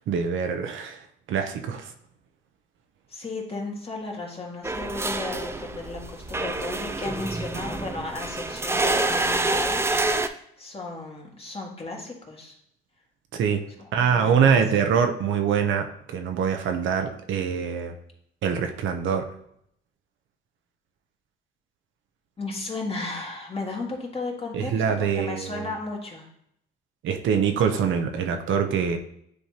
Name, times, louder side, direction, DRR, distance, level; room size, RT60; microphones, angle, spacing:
voice 1, 0.1-1.9 13.3-13.6 13.9-18.0 18.4-19.3 24.5-25.7 27.0-29.0, right 7 dB, 75° right, 6 dB, 0.7 m, -24 dB
voice 2, 3.1-9.9 10.2-12.6 13.8-15.0 22.4-26.3, left 3 dB, 30° left, -1 dB, 1.8 m, -35 dB
sound 1, 4.6-10.3, right 2 dB, 15° right, 0.4 m, -27 dB
9.6 x 3.4 x 2.9 m, 0.72 s
cardioid pair, 90°, 20 cm